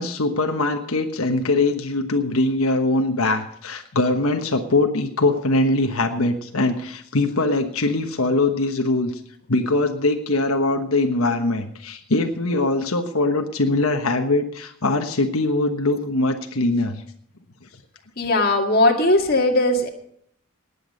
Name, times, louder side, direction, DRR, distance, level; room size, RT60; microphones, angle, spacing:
voice 1, 0.0-9.1 9.5-17.0, left 2 dB, 90° left, 5 dB, 1.2 m, -22 dB
voice 2, 18.2-19.9, left 2 dB, 45° left, 2 dB, 2.0 m, -18 dB
19.0 x 8.4 x 5.4 m, 0.67 s
head